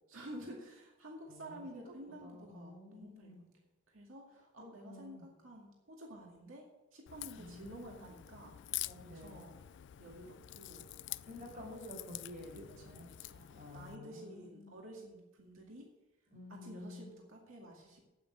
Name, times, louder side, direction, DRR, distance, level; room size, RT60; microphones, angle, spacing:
voice 1, 0.1-3.3 3.9-6.7 6.9-8.5 8.8-10.8 11.4-11.5 12.6-12.9 13.2-15.9 16.5-18.0, right 1 dB, 90° right, -1 dB, 2.2 m, -51 dB
voice 2, 1.3-1.9 2.2-3.5 4.6-5.3 7.4-8.2 9.0-9.5 11.2-13.1 13.5-14.8 16.3-17.1, left 1 dB, 40° right, -1 dB, 5.2 m, -51 dB
Crack, 7.1-14.0, left 15 dB, 60° left, 0.3 m, -47 dB
8.9 x 8.6 x 9.6 m, 1.0 s
head